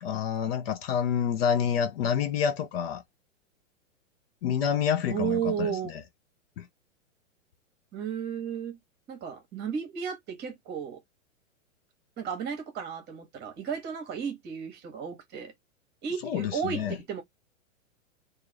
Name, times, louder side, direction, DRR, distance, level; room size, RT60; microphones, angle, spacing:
voice 1, 0.0-3.0 4.4-5.7 6.6-6.7 16.2-16.9, left 8 dB, 45° left, 0.7 m, -28 dB
voice 2, 5.1-5.9 7.9-8.8 9.1-11.0 12.2-15.5 16.0-17.2, right 8 dB, 25° right, 1.3 m, -33 dB
3.0 x 2.7 x 3.8 m
hypercardioid pair, 130°, 40 cm